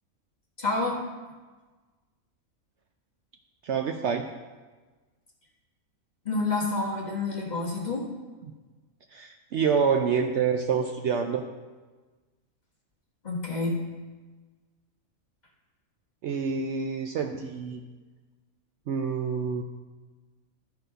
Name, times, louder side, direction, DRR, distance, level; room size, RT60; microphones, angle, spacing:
voice 1, 0.6-1.0 6.2-8.1 13.2-13.8, left 3 dB, 30° left, -2 dB, 1.5 m, -28 dB
voice 2, 3.6-4.3 9.1-11.4 16.2-17.8 18.9-19.6, right 6 dB, 65° right, 5 dB, 0.8 m, -27 dB
13.0 x 4.5 x 5.0 m, 1.3 s
omnidirectional pair, 1.5 m